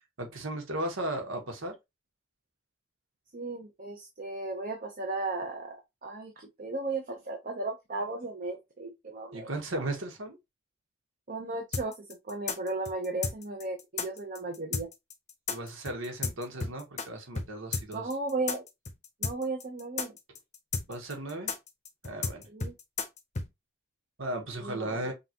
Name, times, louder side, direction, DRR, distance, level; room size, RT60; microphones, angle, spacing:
voice 1, 0.2-1.8 9.3-10.4 15.5-18.1 20.9-21.5 22.0-22.5 24.2-25.1, right 1 dB, 85° right, 1.4 m, -36 dB
voice 2, 3.3-5.8 6.0-9.5 11.3-14.9 17.9-18.6 19.2-20.1 22.5-22.7 24.6-25.1, right 2 dB, 45° right, 0.9 m, -35 dB
sound 1, 11.7-17.1 17.3-17.5 17.7-23.5, left 4 dB, 35° left, 0.8 m, -33 dB
5.7 x 2.5 x 2.9 m
head